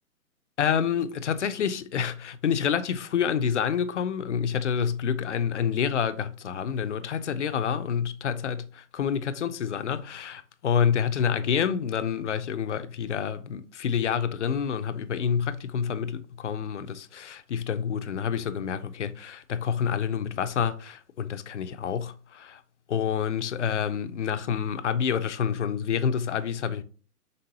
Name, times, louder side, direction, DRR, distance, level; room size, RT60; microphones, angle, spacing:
voice 1, 0.6-8.6 8.9-22.6 22.9-26.8, left 7 dB, 50° left, 0.5 m, -28 dB
5.4 x 3.6 x 2.7 m
hypercardioid pair, 150°, 47 cm